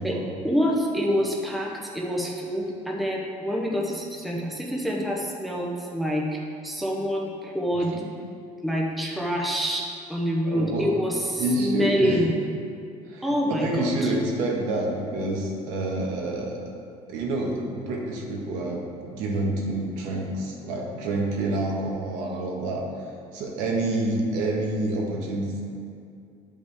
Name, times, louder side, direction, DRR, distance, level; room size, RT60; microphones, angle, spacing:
voice 1, 0.0-7.9 8.6-12.4 13.2-14.1, equal, ahead, -2 dB, 0.7 m, -27 dB
voice 2, 10.4-10.9 11.4-12.2 13.1-16.6 17.1-22.8 23.3-25.6, right 2 dB, 85° right, -1 dB, 1.5 m, -28 dB
10.5 x 5.3 x 3.5 m, 2.4 s
cardioid pair, 160°, 13 cm